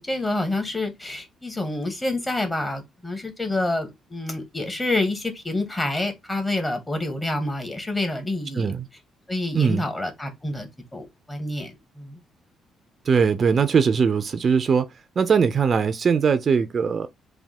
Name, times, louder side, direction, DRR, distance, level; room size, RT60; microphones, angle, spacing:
voice 1, 0.0-8.7 9.3-12.2, left 2 dB, 15° left, 1.5 m, -28 dB
voice 2, 8.5-8.9 9.5-9.8 13.1-14.9 15.2-17.1, right 6 dB, 45° right, 0.6 m, -20 dB
3.6 x 2.8 x 4.1 m
cardioid pair, 90°, 0 cm